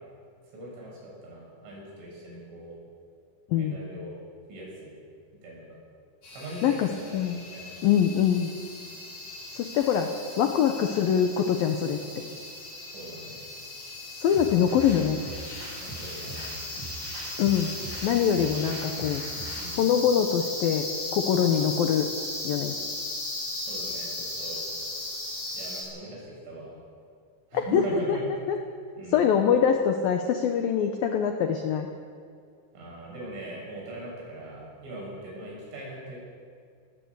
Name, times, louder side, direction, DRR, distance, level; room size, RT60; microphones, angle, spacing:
voice 1, 0.5-2.7 3.5-4.1 4.5-4.9 5.4-5.8 6.3-7.2 7.5-7.8 12.9-13.4 15.8-16.6 19.5-20.0 23.7-24.1 24.4-24.6 25.5-26.7 27.5-28.2 29.0-29.4 32.7-36.2, right 1 dB, 75° right, -3 dB, 9.5 m, -40 dB
voice 2, 3.5-3.8 6.6-7.4 7.8-8.5 9.6-10.1 10.4-12.0 14.2-15.2 17.4-17.7 18.0-19.2 19.8-22.1 22.4-22.7 27.5-28.6 29.1-31.9, left 8 dB, 85° left, 5 dB, 2.0 m, -24 dB
sound 1, 6.2-25.8, left 2 dB, 50° left, 8.8 m, -37 dB
sound 2, 14.2-19.8, right 2 dB, 50° right, 9.0 m, -41 dB
19.0 x 16.5 x 8.1 m, 2.2 s
omnidirectional pair, 5.7 m